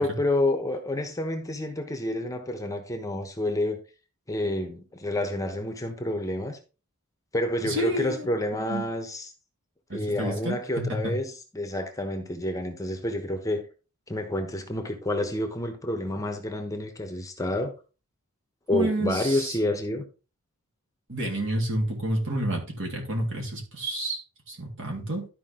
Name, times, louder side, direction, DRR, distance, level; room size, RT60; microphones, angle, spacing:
voice 1, 0.0-3.8 4.3-6.6 7.3-9.3 9.9-13.7 14.1-17.7 18.7-20.0, left 1 dB, 15° left, 1.0 m, -29 dB
voice 2, 7.6-8.3 8.5-8.8 9.9-11.1 18.7-19.6 21.1-25.3, right 1 dB, 60° right, 3.3 m, -30 dB
12.0 x 5.1 x 3.8 m
head